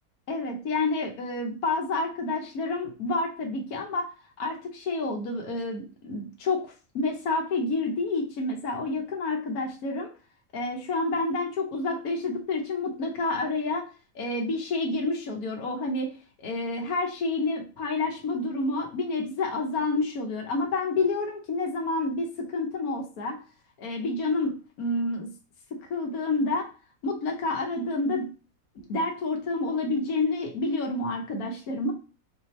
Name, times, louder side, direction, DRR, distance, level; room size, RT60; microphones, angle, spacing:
voice 1, 0.3-4.1 4.4-10.1 10.5-13.9 14.1-23.4 23.8-25.3 25.7-26.7 27.0-28.3 28.8-31.9, left 3 dB, 85° left, 1 dB, 1.4 m, -29 dB
4.2 x 2.7 x 3.1 m, 0.34 s
omnidirectional pair, 1.5 m